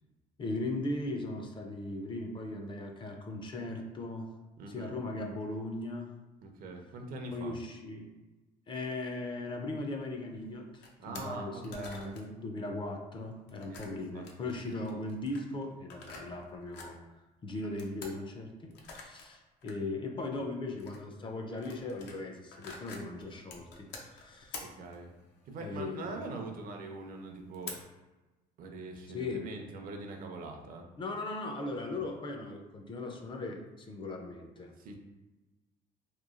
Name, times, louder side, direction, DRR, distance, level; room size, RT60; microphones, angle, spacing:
voice 1, 0.4-4.3 4.6-6.1 7.3-8.1 8.7-17.0 17.4-24.6 25.6-26.2 29.1-29.5 31.0-34.7, left 2 dB, 30° left, 2 dB, 0.4 m, -38 dB
voice 2, 4.6-4.9 6.4-7.5 11.0-12.2 13.7-14.3 24.6-25.1 25.5-27.8 28.6-30.9 34.8-34.9, right 2 dB, 55° right, 3 dB, 0.5 m, -43 dB
sound 1, 10.3-10.5 10.8-10.9 11.1-11.3 11.5-12.3 13.5-17.0 17.8-18.1 18.7-19.2 19.6-19.7 20.8-21.0 21.4-22.2 22.5-26.2 26.8-26.9 27.3-27.8, left 4 dB, 85° left, 0.5 m, -47 dB
3.0 x 2.2 x 2.4 m, 1.1 s
cardioid pair, 110°, 17 cm